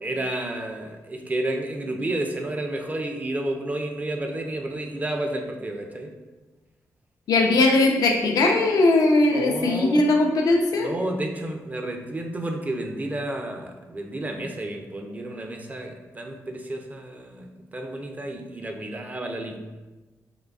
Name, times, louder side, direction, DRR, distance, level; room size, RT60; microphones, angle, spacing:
voice 1, 0.0-6.1 9.3-10.1 10.7-17.5 17.7-19.6, right 1 dB, 25° right, 3 dB, 0.5 m, -31 dB
voice 2, 7.3-10.9, left 2 dB, 80° left, 2 dB, 0.5 m, -19 dB
3.7 x 3.1 x 2.3 m, 1.2 s
cardioid pair, 80°, 6 cm